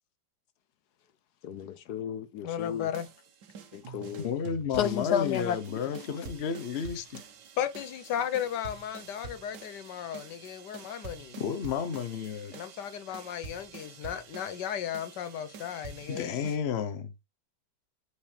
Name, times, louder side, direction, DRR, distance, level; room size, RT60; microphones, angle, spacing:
voice 1, 1.4-2.9 3.7-4.3 4.8-5.6, left 9 dB, 75° left, 1.2 m, -32 dB
voice 2, 2.4-3.1 7.6-11.4 12.5-16.3, left 9 dB, 90° left, 1.5 m, -35 dB
sound 1, 2.6-16.6, right 5 dB, 85° right, 1.7 m, -48 dB
voice 3, 4.2-7.2 11.4-12.5 16.1-17.1, left 7 dB, 45° left, 1.0 m, -32 dB
8.7 x 4.8 x 3.3 m
omnidirectional pair, 1.8 m